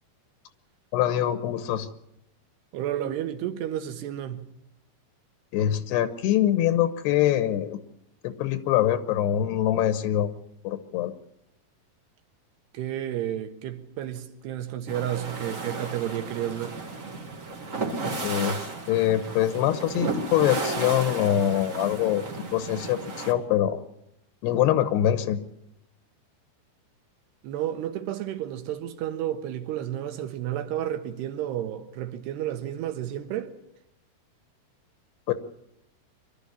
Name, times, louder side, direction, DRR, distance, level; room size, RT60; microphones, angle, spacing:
voice 1, 0.9-1.9 5.5-7.8 8.2-10.3 10.6-11.1 18.2-22.2 22.5-23.8 24.4-25.4 35.3-35.4, left 11 dB, 80° left, 3.1 m, -24 dB
voice 2, 2.7-4.5 12.7-16.8 27.4-33.5, right 11 dB, 80° right, 3.4 m, -31 dB
sound 1, 14.9-23.3, right 3 dB, 30° right, 1.4 m, -34 dB
24.5 x 12.5 x 9.8 m
omnidirectional pair, 4.8 m